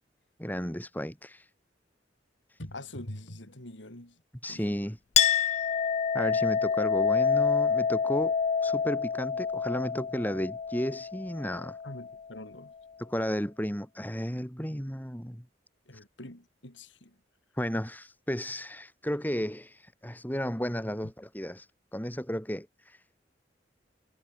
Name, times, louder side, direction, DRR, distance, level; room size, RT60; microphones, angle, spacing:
voice 1, 0.4-1.5 2.5-2.6 4.4-5.0 6.1-8.3 8.6-11.8 13.0-15.4 17.6-23.0, equal, 10° left, 4.4 m, -33 dB
voice 2, 2.6-4.2 4.5-4.6 11.8-12.7 15.9-17.1, left 1 dB, 85° left, 4.7 m, -44 dB
Chink clink, 5.2-12.2, left 6 dB, 40° left, 0.3 m, -27 dB
head